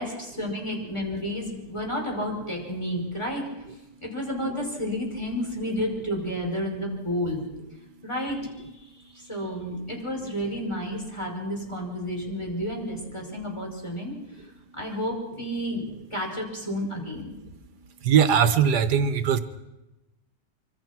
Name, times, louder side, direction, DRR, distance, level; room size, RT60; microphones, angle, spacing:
voice 1, 0.0-3.4 4.0-7.4 8.0-14.1 14.7-17.3, equal, 15° left, 0 dB, 5.5 m, -31 dB
voice 2, 18.0-19.4, right 8 dB, 80° right, 12 dB, 1.7 m, -20 dB
25.0 x 24.5 x 6.1 m, 0.98 s
omnidirectional pair, 1.8 m